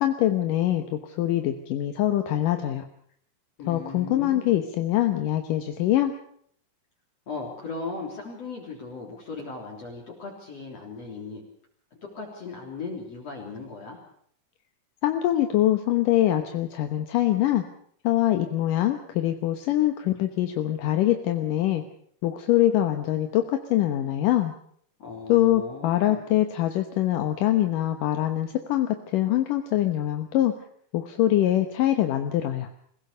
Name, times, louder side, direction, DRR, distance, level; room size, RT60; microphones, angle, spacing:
voice 1, 0.0-2.9 3.7-6.1 15.0-17.6 18.0-21.8 22.2-24.5 25.3-30.5 30.9-32.7, left 13 dB, 75° left, 6 dB, 2.8 m, -24 dB
voice 2, 3.6-4.5 7.3-11.4 12.0-14.0 25.0-26.2, left 4 dB, 45° left, -1 dB, 4.4 m, -37 dB
26.0 x 17.0 x 6.8 m, 0.63 s
omnidirectional pair, 3.9 m